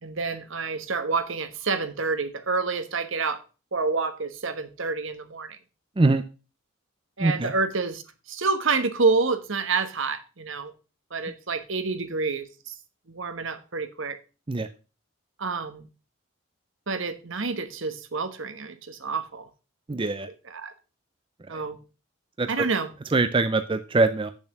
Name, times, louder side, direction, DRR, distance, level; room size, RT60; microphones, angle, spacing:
voice 1, 0.0-3.4 3.7-5.6 7.2-8.0 8.3-10.7 11.1-12.8 13.1-14.2 15.4-15.9 16.9-19.5 20.5-20.7 21.5-21.8 22.5-22.9, right 4 dB, 65° right, 1.3 m, -28 dB
voice 2, 7.2-7.5 14.5-14.7 19.9-20.3 21.5-21.6 22.4-22.7 23.1-24.3, right 3 dB, 25° right, 0.5 m, -23 dB
8.5 x 7.1 x 5.8 m
head